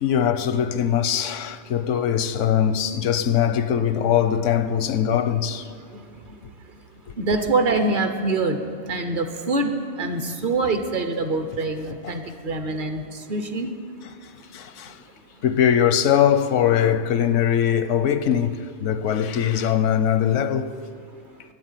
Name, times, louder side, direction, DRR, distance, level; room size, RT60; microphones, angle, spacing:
voice 1, 0.0-5.7 12.0-12.2 14.5-14.9 15.4-20.7, left 9 dB, 85° left, 1.0 m, -21 dB
voice 2, 7.2-13.0 13.3-13.7, right 3 dB, 50° right, 1.0 m, -24 dB
12.5 x 8.3 x 9.0 m
omnidirectional pair, 1.2 m